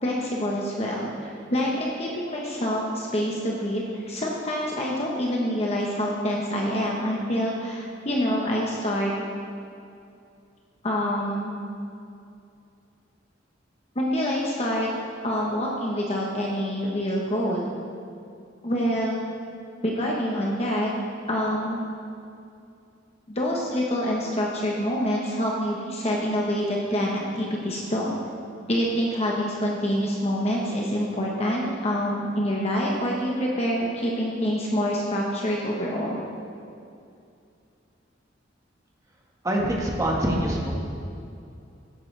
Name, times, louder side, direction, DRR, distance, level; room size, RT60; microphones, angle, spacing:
voice 1, 0.0-9.1 10.8-11.5 13.9-14.9 15.2-17.7 18.6-19.2 19.8-20.9 21.3-21.8 23.3-28.2 28.7-36.2, equal, 35° left, -2 dB, 1.1 m, -26 dB
voice 2, 39.4-40.7, right 1 dB, 20° right, -2 dB, 1.5 m, -24 dB
15.5 x 9.1 x 3.3 m, 2.5 s
head